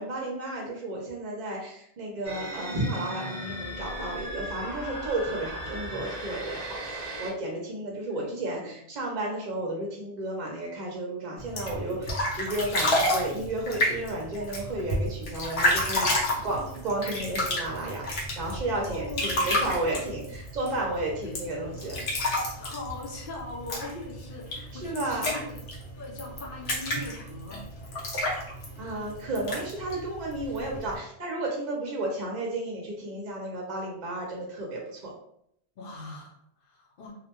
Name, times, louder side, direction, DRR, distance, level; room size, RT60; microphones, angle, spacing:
voice 1, 0.0-22.0 24.5-25.4 28.8-35.1, right 2 dB, 55° right, -1 dB, 0.6 m, -33 dB
sound 1, 2.2-7.3, equal, 20° left, 0.9 m, -37 dB
voice 2, 8.1-8.8 18.8-20.2 21.2-22.0 22.5-25.6 26.0-27.6 35.8-37.2, left 2 dB, 60° left, -1 dB, 0.8 m, -41 dB
sound 2, 11.4-31.0, left 1 dB, 90° left, 1.0 m, -31 dB
2.5 x 2.1 x 2.8 m, 0.73 s
omnidirectional pair, 1.0 m